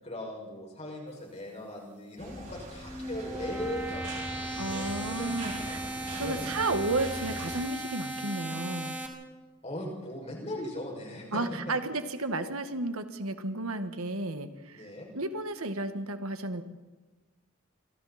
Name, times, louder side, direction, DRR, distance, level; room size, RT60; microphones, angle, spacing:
voice 1, 0.0-4.1 4.6-6.5 9.6-11.4 14.7-15.1, left 1 dB, 30° left, -1 dB, 6.2 m, -39 dB
sound 1, 2.2-7.6, right 1 dB, 35° right, 6.8 m, -42 dB
sound 2, 2.6-9.1, right 1 dB, 10° right, 2.9 m, -37 dB
voice 2, 4.6-5.8 6.1-9.0 11.3-16.6, right 2 dB, 85° right, 8 dB, 1.7 m, -33 dB
27.5 x 24.0 x 4.3 m, 1.2 s
head